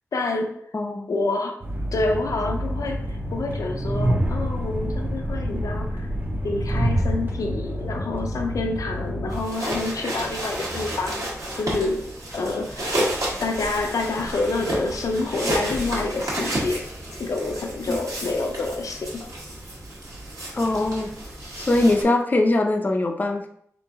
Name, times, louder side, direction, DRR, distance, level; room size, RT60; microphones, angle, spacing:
voice 1, 0.1-0.7 1.1-1.6 1.9-6.1 6.4-11.3 11.6-13.0 13.4-16.9 17.2-19.3, left 3 dB, 85° left, 3 dB, 0.6 m, -28 dB
voice 2, 0.7-1.2 17.9-18.0 20.5-21.1 21.6-23.5, left 2 dB, 30° left, 3 dB, 0.4 m, -22 dB
Train, 1.6-9.4, equal, 35° right, 0.6 m, -27 dB
sound 1, 9.3-22.0, right 1 dB, 80° right, 1.4 m, -31 dB
3.7 x 3.0 x 3.5 m, 0.66 s
wide cardioid pair, 80°, 6 cm